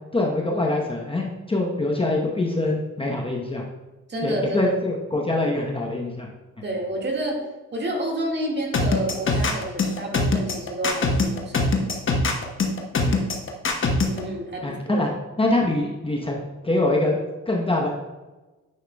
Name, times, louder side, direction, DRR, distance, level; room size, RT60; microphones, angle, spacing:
voice 1, 0.1-3.6 4.2-6.3 13.0-13.2 14.6-15.1 15.4-17.2 17.5-17.9, left 2 dB, 20° left, -1 dB, 1.0 m, -24 dB
voice 2, 4.1-4.6 6.6-7.4 7.7-11.9 14.1-15.0, right 1 dB, 35° right, 0 dB, 2.0 m, -29 dB
sound 1, 8.7-14.2, left 3 dB, 40° left, 1.1 m, -22 dB
9.5 x 5.6 x 2.3 m, 1.2 s
cardioid pair, 90°, 30 cm